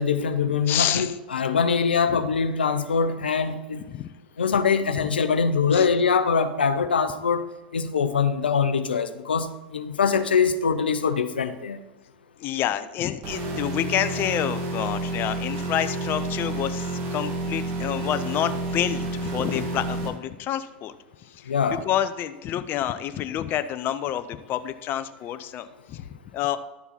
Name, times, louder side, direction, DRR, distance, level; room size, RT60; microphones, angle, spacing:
voice 1, 0.0-3.8 4.4-7.4 7.7-11.8 21.5-21.8, left 6 dB, 90° left, 0.6 m, -23 dB
voice 2, 0.7-1.2 3.9-4.1 5.7-5.9 12.4-20.9 21.2-26.0 26.3-26.6, left 11 dB, 45° left, 0.7 m, -28 dB
sound 1, 13.2-20.1, right 2 dB, 50° right, 2.3 m, -30 dB
11.5 x 6.9 x 4.2 m
hypercardioid pair, 90°, 5 cm